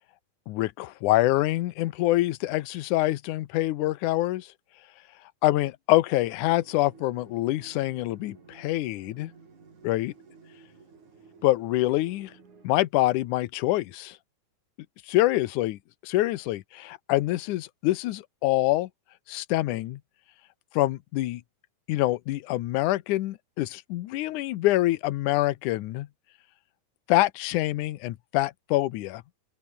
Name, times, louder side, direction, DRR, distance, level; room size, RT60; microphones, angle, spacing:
voice 1, 0.5-4.5 5.4-9.3 9.8-10.1 11.4-12.3 12.6-14.2 15.1-18.9 19.3-20.0 20.7-21.4 21.9-26.1 27.1-29.2, left 16 dB, 80° left, 1.8 m, -25 dB
sound 1, 6.4-12.7, right 5 dB, 50° right, 6.1 m, -54 dB
open air
omnidirectional pair, 4.7 m